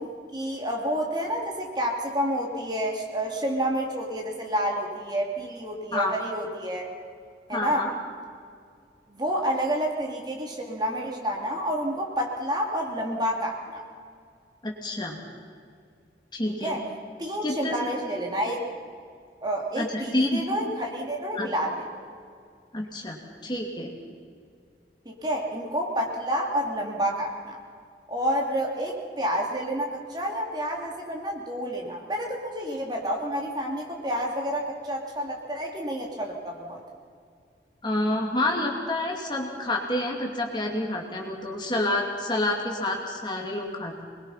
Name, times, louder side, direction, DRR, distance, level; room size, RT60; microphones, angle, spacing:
voice 1, 0.0-6.9 7.5-7.9 9.1-13.8 16.5-16.8 17.2-18.6 19.4-21.8 25.0-27.6 28.1-36.8, equal, 25° right, 0 dB, 2.8 m, -29 dB
voice 2, 7.5-7.9 14.6-15.2 16.3-16.8 17.4-17.7 19.8-20.4 21.3-21.5 22.7-23.9 37.8-44.0, left 1 dB, 25° left, 0 dB, 2.6 m, -28 dB
24.5 x 21.5 x 5.8 m, 2.2 s
head